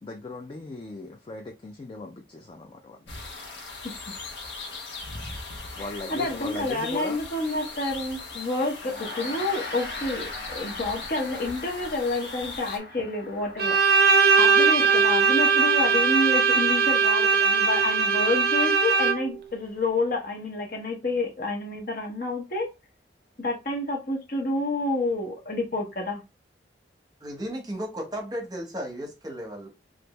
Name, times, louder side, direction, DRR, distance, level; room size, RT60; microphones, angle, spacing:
voice 1, 0.0-3.0 5.8-7.2, left 3 dB, 30° left, 0.3 m, -38 dB
sound 1, 3.1-12.8, left 3 dB, 85° left, 0.9 m, -39 dB
voice 2, 5.7-13.9 14.4-22.7 23.4-26.2, left 2 dB, 50° left, 0.9 m, -29 dB
Gong, 8.8-18.5, left 2 dB, 70° left, 1.2 m, -42 dB
Bowed string instrument, 13.6-19.4, right 5 dB, 55° right, 0.5 m, -20 dB
voice 3, 27.2-29.7, equal, 20° right, 0.8 m, -34 dB
3.3 x 2.5 x 2.9 m
head